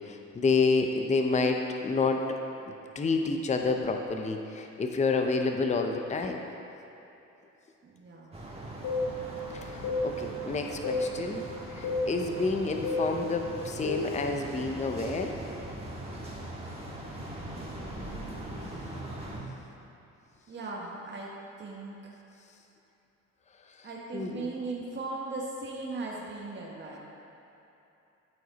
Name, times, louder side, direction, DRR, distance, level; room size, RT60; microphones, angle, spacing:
voice 1, 0.1-2.2 2.9-6.5 9.5-9.7 10.0-11.4 11.7-15.3 23.8-23.9 24.1-24.5, left 4 dB, 25° left, 4 dB, 0.6 m, -29 dB
voice 2, 7.8-8.5 10.4-10.6 17.5-18.4 20.5-21.3 21.6-22.0 23.8-27.0, right 3 dB, 40° right, -3 dB, 1.2 m, -39 dB
sound 1, 8.3-19.4, right 1 dB, 20° right, 1.5 m, -41 dB
sound 2, 8.8-9.1 9.8-10.1 10.8-11.1 11.8-12.1 12.8-13.1 13.8-14.2, left 3 dB, 80° left, 2.0 m, -29 dB
12.5 x 4.8 x 4.0 m, 2.9 s
cardioid pair, 90°, 30 cm